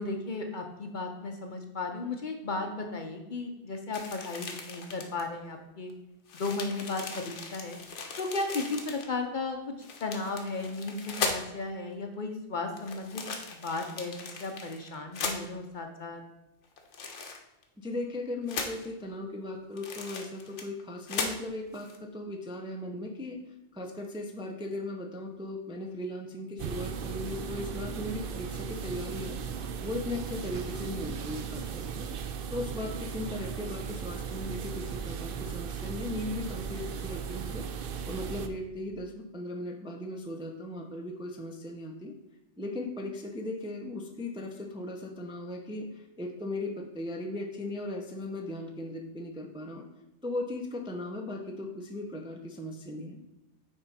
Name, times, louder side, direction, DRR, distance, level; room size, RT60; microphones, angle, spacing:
voice 1, 0.0-5.9 6.3-7.8 8.2-13.2 13.5-16.2, left 3 dB, 50° left, 4 dB, 0.8 m, -35 dB
sound 1, 3.9-5.2 5.9-6.0 6.3-9.1 9.8-11.6 12.7-15.4 16.8-17.6 18.5-18.9 19.8-20.8 21.1-21.4 21.7-22.0, left 4 dB, 80° left, 1.2 m, -38 dB
voice 2, 17.8-23.4 23.7-29.4 29.8-32.1 32.5-37.7 38.0-42.1 42.6-49.9 50.2-53.2, left 1 dB, 5° right, 2 dB, 0.5 m, -37 dB
sound 2, 26.6-38.5, right 7 dB, 60° right, 0.7 m, -37 dB
9.3 x 3.5 x 4.1 m, 0.93 s
omnidirectional pair, 1.2 m